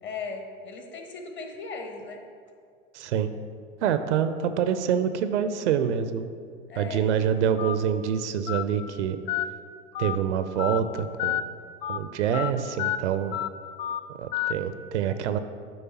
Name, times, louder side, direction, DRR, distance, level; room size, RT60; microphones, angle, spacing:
voice 1, 0.0-2.2 6.7-7.1, left 4 dB, 30° left, 3 dB, 1.1 m, -37 dB
voice 2, 2.9-3.3 3.8-6.3 6.8-9.2 10.0-11.4 11.9-13.4 14.2-15.4, right 8 dB, 65° right, 10 dB, 0.5 m, -26 dB
Telephone, 7.6-7.8 8.5-8.6 9.3-9.5 10.0-10.2 10.6-10.8 11.2-11.4 11.8-12.0 12.3-12.5 12.8-13.0 13.3-13.5 13.8-14.0 14.3-14.5, left 13 dB, 50° left, 0.5 m, -28 dB
8.8 x 3.3 x 5.6 m, 2.2 s
figure-of-eight pair, 90°, 38 cm